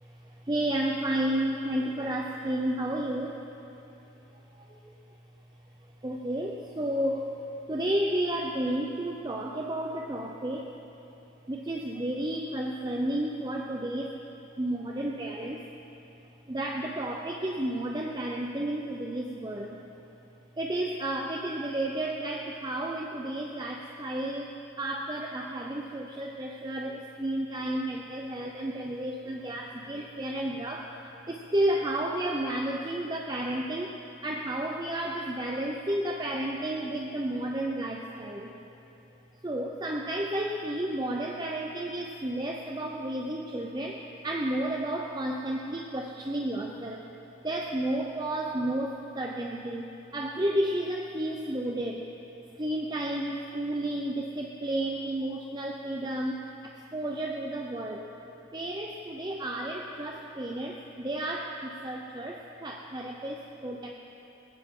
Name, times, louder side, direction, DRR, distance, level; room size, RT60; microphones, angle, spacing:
voice 1, 0.5-3.3 6.0-7.2 7.7-10.7 11.5-14.1 14.6-15.6 16.5-19.7 20.6-24.5 24.8-30.8 31.3-33.9 34.2-38.5 39.4-44.0 44.2-47.0 47.4-49.8 50.1-52.0 52.6-56.3 56.9-58.0 58.5-60.7 61.0-61.5 61.8-63.4 63.6-63.9, right 1 dB, 20° right, 1 dB, 0.6 m, -31 dB
20.0 x 14.5 x 3.8 m, 3.0 s
head